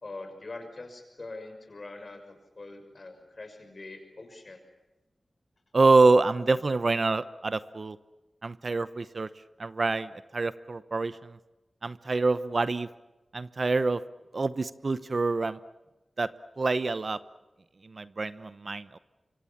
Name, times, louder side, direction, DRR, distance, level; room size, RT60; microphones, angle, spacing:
voice 1, 0.0-4.6, left 2 dB, 50° left, 6 dB, 6.2 m, -43 dB
voice 2, 5.7-8.0 8.4-9.3 9.6-11.4 11.8-12.9 13.3-14.0 14.3-15.6 16.2-16.3 16.6-17.2 17.8-19.0, right 3 dB, 55° right, 15 dB, 0.8 m, -26 dB
25.5 x 24.5 x 7.3 m, 1.1 s
wide cardioid pair, 60°, 0 cm